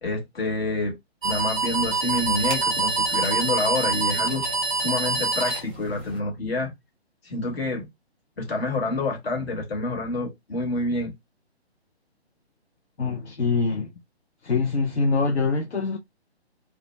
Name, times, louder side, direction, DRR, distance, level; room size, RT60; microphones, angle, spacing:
voice 1, 0.0-1.0 1.2-4.5 4.7-6.7 7.2-7.9 8.4-11.1, left 2 dB, 65° left, 1.4 m, -28 dB
sound 1, 1.2-6.2, right 4 dB, 10° right, 0.4 m, -25 dB
voice 2, 13.0-13.9 14.4-16.0, left 4 dB, 85° left, 0.6 m, -24 dB
2.4 x 2.2 x 3.1 m
figure-of-eight pair, 140°, 33 cm